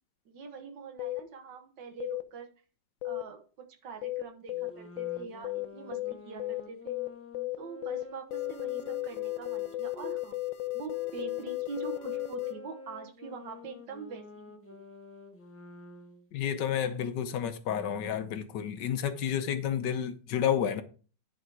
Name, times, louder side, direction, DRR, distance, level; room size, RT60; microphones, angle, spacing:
voice 1, 0.3-2.5 3.0-7.0 7.6-10.4 10.7-14.8, right 5 dB, 75° right, 1.9 m, -44 dB
sound 1, 1.0-1.2 2.0-2.2 3.0-3.2 4.0-4.2 4.5-4.7 5.0-5.2 5.4-5.7 5.9-6.1 6.4-6.6 6.9-7.1 7.3-7.6 7.8-8.0 8.3-12.5, left 18 dB, 85° left, 1.5 m, -34 dB
sound 2, 4.5-10.2 10.9-16.3, left 1 dB, 15° left, 0.5 m, -49 dB
voice 2, 16.3-20.8, left 9 dB, 70° left, 1.4 m, -30 dB
10.5 x 4.8 x 4.7 m
omnidirectional pair, 2.0 m